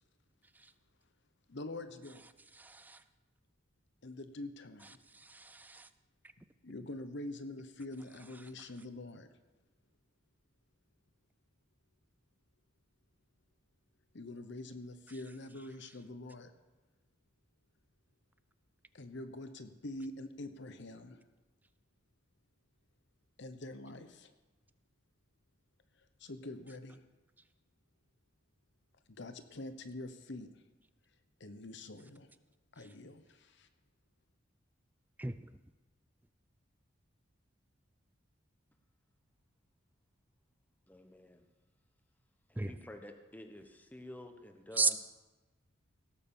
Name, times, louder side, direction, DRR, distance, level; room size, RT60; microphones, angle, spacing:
voice 1, 1.5-2.2 4.0-5.0 6.6-9.3 14.1-16.5 18.9-21.2 23.4-24.3 26.0-27.0 29.1-30.5 31.4-32.3 32.7-33.7, left 2 dB, 60° left, 10 dB, 1.0 m, -45 dB
voice 2, 2.6-3.0 5.1-5.9 35.2-35.5 42.6-42.8 44.7-44.9, right 3 dB, 10° right, 12 dB, 0.3 m, -34 dB
voice 3, 40.9-41.4 42.5-45.0, left 1 dB, 10° left, 6 dB, 1.0 m, -50 dB
17.5 x 6.7 x 7.1 m, 1.2 s
head